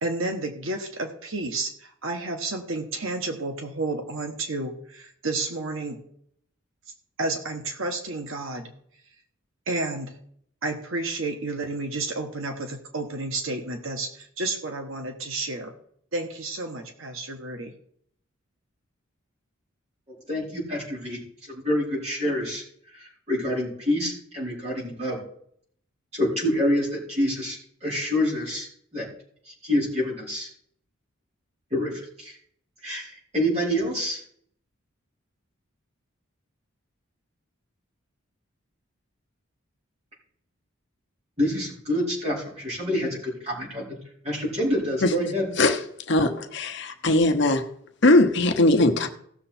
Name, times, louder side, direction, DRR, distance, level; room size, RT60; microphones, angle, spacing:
voice 1, 0.0-6.0 7.2-8.7 9.7-10.2 10.6-15.7 16.1-17.7, right 2 dB, 70° right, 5 dB, 1.3 m, -31 dB
voice 2, 20.1-21.2 21.5-22.6 22.9-25.2 26.1-29.1 29.6-30.5 31.7-31.9 32.2-32.3 32.8-34.2 41.4-43.9 44.2-45.5, equal, 30° right, -5 dB, 4.5 m, -27 dB
voice 3, 46.1-47.6 48.0-49.1, left 2 dB, 55° left, 5 dB, 1.0 m, -20 dB
16.5 x 6.8 x 4.4 m, 0.65 s
head